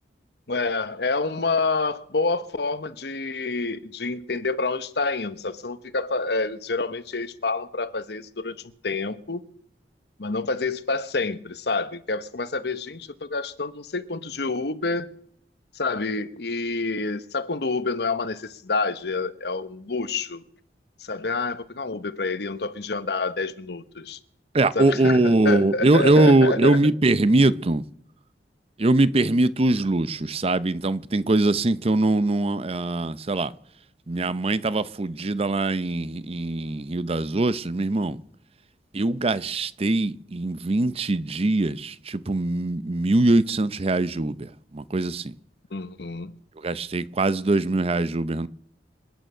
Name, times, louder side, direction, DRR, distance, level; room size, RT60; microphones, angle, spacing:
voice 1, 0.5-8.6 8.8-9.4 10.2-15.1 15.7-20.4 21.0-24.2 24.7-26.8 45.7-46.3, left 3 dB, 65° left, 1.0 m, -28 dB
voice 2, 24.5-27.8 28.8-33.5 34.1-38.2 38.9-45.3 46.6-48.5, right 2 dB, 35° right, 0.6 m, -22 dB
27.0 x 9.0 x 5.6 m
head